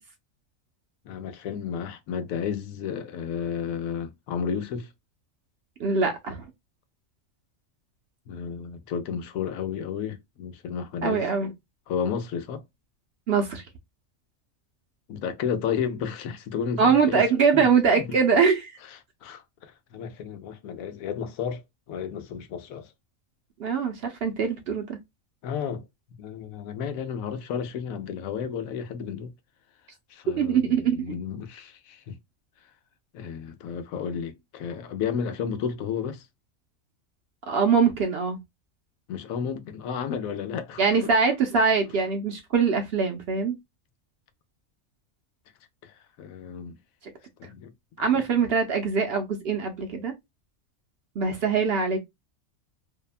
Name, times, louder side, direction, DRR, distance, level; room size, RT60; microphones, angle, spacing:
voice 1, 1.0-4.9 8.3-11.2 11.9-12.6 15.1-17.2 17.5-17.7 19.2-21.6 21.9-22.9 25.4-25.8 26.2-29.3 30.1-32.2 33.1-36.2 39.1-41.0 45.8-46.8 47.5-47.7, left 7 dB, 85° left, 1.0 m, -32 dB
voice 2, 5.8-6.4 11.0-11.5 13.3-13.6 16.8-18.7 23.6-25.0 30.4-31.2 37.5-38.4 40.8-43.6 48.0-50.1 51.2-52.0, right 5 dB, 65° right, 0.6 m, -23 dB
2.7 x 2.1 x 2.3 m
omnidirectional pair, 1.4 m